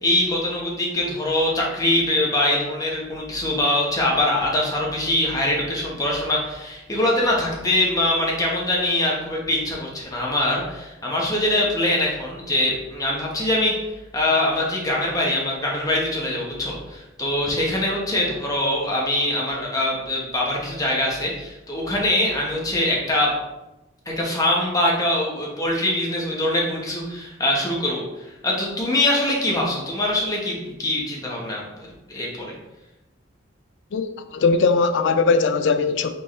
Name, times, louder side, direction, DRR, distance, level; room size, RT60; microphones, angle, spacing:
voice 1, 0.0-13.8 14.1-23.3 24.1-28.0 28.4-32.5, left 1 dB, 20° left, 1.1 m, -23 dB
voice 2, 34.3-36.1, left 4 dB, 70° left, 0.4 m, -19 dB
4.4 x 3.7 x 3.1 m
head